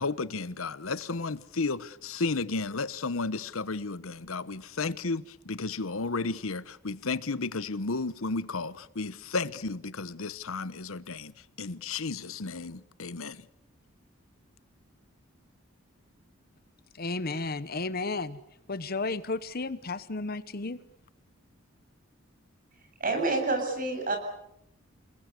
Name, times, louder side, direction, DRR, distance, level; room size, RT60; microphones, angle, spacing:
voice 1, 0.0-11.3 11.6-13.5, left 3 dB, 85° left, 1.0 m, -33 dB
voice 2, 16.9-18.4 18.7-20.8, left 3 dB, 45° left, 1.0 m, -33 dB
voice 3, 23.0-24.2, right 3 dB, 40° right, 7.8 m, -28 dB
29.5 x 21.0 x 8.3 m
head